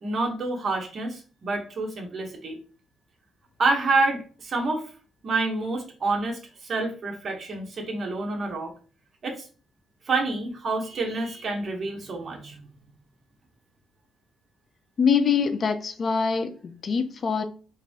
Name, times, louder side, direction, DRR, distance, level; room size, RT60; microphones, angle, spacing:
voice 1, 0.0-2.6 3.6-4.9 5.2-8.7 9.2-9.3 10.1-12.6, right 3 dB, 45° right, 1.2 m, -28 dB
voice 2, 15.0-17.4, left 6 dB, 50° left, 0.5 m, -24 dB
4.0 x 2.7 x 3.5 m
cardioid pair, 90°, 0 cm